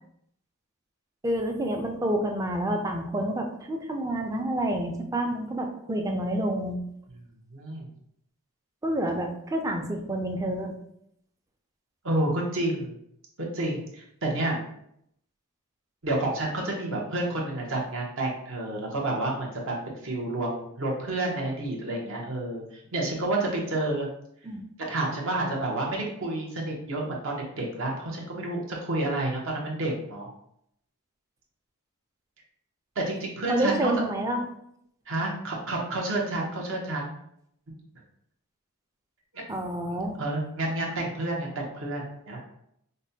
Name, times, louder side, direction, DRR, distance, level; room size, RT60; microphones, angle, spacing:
voice 1, 1.2-6.8 8.8-10.8 24.4-24.6 33.5-34.4 39.5-40.2, right 1 dB, 15° right, 3 dB, 0.4 m, -28 dB
voice 2, 7.5-7.9 12.0-13.0 13.4-14.6 16.0-24.1 24.8-30.3 32.9-34.0 35.1-37.2 39.3-39.5 40.2-42.5, right 2 dB, 60° right, -1 dB, 0.9 m, -30 dB
5.1 x 2.2 x 2.7 m, 0.74 s
head